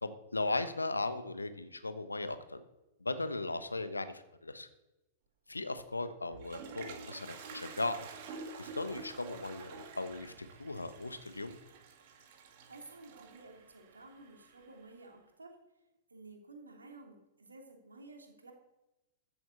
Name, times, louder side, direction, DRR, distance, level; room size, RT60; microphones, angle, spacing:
voice 1, 0.0-2.6 3.0-4.7 5.5-8.1 8.6-10.3 10.6-11.6, left 2 dB, 80° left, 11 dB, 1.1 m, -37 dB
Toilet flush, 6.0-14.9, right 4 dB, 45° right, 2.0 m, -49 dB
voice 2, 12.7-15.6 16.1-18.5, right 2 dB, 75° right, 1 dB, 3.0 m, -53 dB
14.0 x 7.7 x 6.9 m, 0.98 s
figure-of-eight pair, 105°, 0 cm